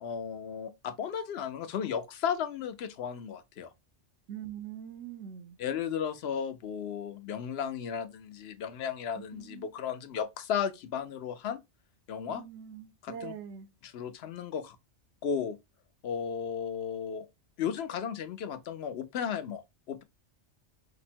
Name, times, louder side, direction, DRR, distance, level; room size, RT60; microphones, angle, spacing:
voice 1, 0.0-3.7 5.6-11.6 12.1-12.4 13.0-13.3 13.8-14.8 15.2-15.6 16.0-17.3 17.6-20.0, left 7 dB, 65° left, 0.8 m, -34 dB
voice 2, 4.3-5.6 9.2-9.7 12.3-13.7, right 9 dB, 85° right, 1.0 m, -43 dB
5.0 x 2.1 x 4.2 m
omnidirectional pair, 1.2 m